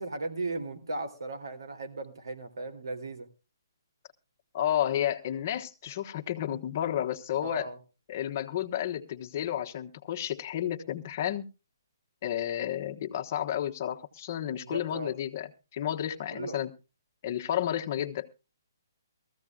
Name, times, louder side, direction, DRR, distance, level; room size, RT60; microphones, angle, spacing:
voice 1, 0.0-3.3 7.4-7.8 14.6-15.1 16.3-16.6, right 2 dB, 90° right, 2.8 m, -37 dB
voice 2, 4.5-7.7 8.1-11.5 12.2-16.7 17.2-18.3, left 11 dB, 35° left, 1.2 m, -31 dB
20.5 x 14.5 x 2.4 m
hypercardioid pair, 165°, 2 cm